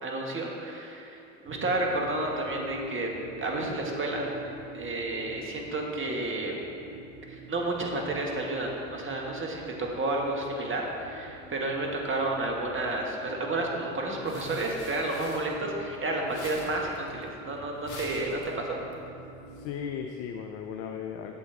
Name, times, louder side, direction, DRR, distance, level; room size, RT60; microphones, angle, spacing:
voice 1, 0.0-1.2 1.4-3.1 3.4-4.3 4.7-6.6 7.3-18.8, right 2 dB, 30° right, 0 dB, 1.6 m, -31 dB
sound 1, 1.5-19.7, right 1 dB, 70° right, 1.4 m, -46 dB
sound 2, 13.9-16.0 16.2-18.9, left 2 dB, 45° left, 1.9 m, -46 dB
voice 2, 19.5-21.4, left 7 dB, 65° left, 4 dB, 0.6 m, -36 dB
8.4 x 7.4 x 3.9 m, 2.7 s
hypercardioid pair, 60°, 41 cm